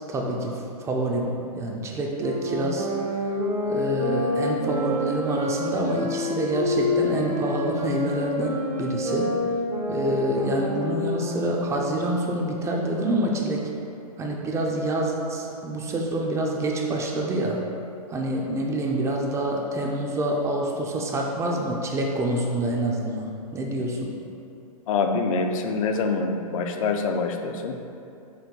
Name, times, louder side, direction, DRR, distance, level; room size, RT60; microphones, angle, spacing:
voice 1, 0.1-3.2 3.7-9.3 9.9-13.7 14.2-17.6 18.1-24.1, right 1 dB, 15° right, 0 dB, 0.3 m, -27 dB
sound 1, 2.2-12.2, left 1 dB, 70° right, 0.9 m, -28 dB
voice 2, 24.9-27.8, left 4 dB, 65° left, 4 dB, 0.4 m, -25 dB
4.5 x 2.6 x 3.8 m, 2.7 s
hypercardioid pair, 120°, 19 cm